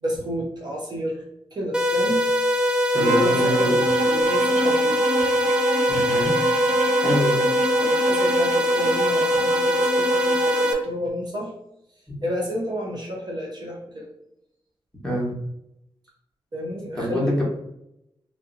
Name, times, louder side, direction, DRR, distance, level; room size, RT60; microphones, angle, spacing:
voice 1, 0.0-2.3 2.6-2.7 3.0-3.7 4.0-5.1 7.2-11.5 12.2-14.1 16.5-17.4, equal, 45° right, -3 dB, 0.8 m, -30 dB
sound 1, 1.7-10.7, left 1 dB, 10° right, 0.3 m, -22 dB
voice 2, 2.9-3.7 5.9-6.3 7.0-7.4 15.0-15.3 16.9-17.4, equal, 5° left, -5 dB, 1.1 m, -25 dB
Bowed string instrument, 2.9-10.8, right 3 dB, 90° right, 0.4 m, -28 dB
3.2 x 2.7 x 2.6 m, 0.81 s
wide cardioid pair, 150°, 10 cm